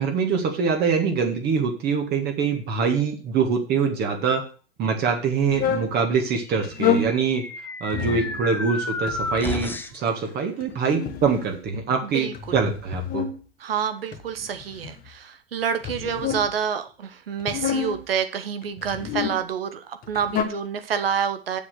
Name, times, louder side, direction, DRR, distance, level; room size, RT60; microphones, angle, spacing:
voice 1, 0.0-4.4 4.8-7.5 7.8-13.3, right 5 dB, 30° right, 3 dB, 1.7 m, -24 dB
sound 1, 5.5-5.9 6.6-7.1 7.9-8.4 9.1-9.7 10.6-11.8 12.3-13.4 14.1-15.1 15.8-16.5 17.4-18.0 18.8-19.4 20.0-20.4, left 8 dB, 30° left, 1.3 m, -28 dB
sound 2, 6.6-10.1, left 3 dB, 5° left, 0.7 m, -32 dB
voice 2, 7.9-8.4 12.0-12.6 13.6-21.6, right 7 dB, 70° right, 9 dB, 1.2 m, -28 dB
7.3 x 6.4 x 6.6 m, 0.38 s
figure-of-eight pair, 95°, 30 cm